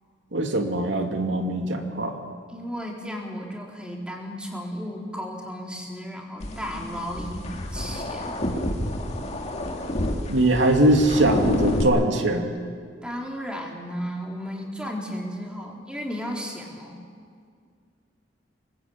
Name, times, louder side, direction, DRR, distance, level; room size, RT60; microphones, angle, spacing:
voice 1, 0.3-2.2 10.3-12.5, right 1 dB, 80° right, 3 dB, 2.7 m, -21 dB
voice 2, 2.5-8.4 13.0-17.1, equal, 5° right, -1 dB, 4.1 m, -34 dB
sound 1, 6.4-11.8, left 1 dB, 35° left, 2.3 m, -29 dB
24.5 x 20.5 x 8.8 m, 2.2 s
head